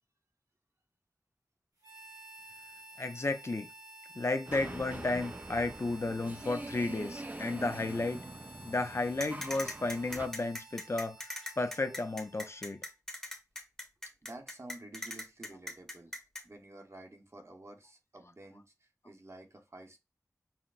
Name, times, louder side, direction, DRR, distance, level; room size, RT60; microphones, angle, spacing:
Harmonica, 1.8-12.9, right 2 dB, 90° right, 1.9 m, -53 dB
voice 1, 3.0-3.7 4.2-8.2 8.6-11.2 11.6-12.8, left 2 dB, 45° left, 0.5 m, -33 dB
sound 1, 4.5-10.3, right 2 dB, 30° right, 0.5 m, -44 dB
sound 2, 9.2-16.4, left 1 dB, 10° left, 1.0 m, -40 dB
voice 2, 14.2-16.1 16.4-20.0, right 2 dB, 50° right, 0.9 m, -51 dB
5.6 x 2.1 x 2.4 m
wide cardioid pair, 60°, 6 cm